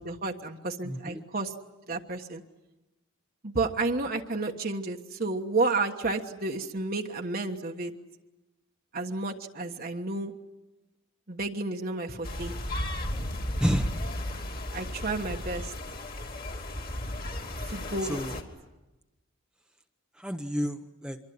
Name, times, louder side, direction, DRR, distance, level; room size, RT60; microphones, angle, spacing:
voice 1, 0.0-1.5 1.9-2.4 3.4-7.9 8.9-10.3 11.3-12.5 14.7-15.7 17.7-18.2, right 3 dB, 45° right, 2 dB, 1.3 m, -31 dB
voice 2, 0.8-1.2 13.6-13.9 18.0-18.4 20.2-21.2, equal, 5° right, 5 dB, 1.0 m, -30 dB
sound 1, 12.2-18.4, left 1 dB, 45° left, 2.9 m, -34 dB
25.5 x 23.5 x 9.5 m, 1.0 s
head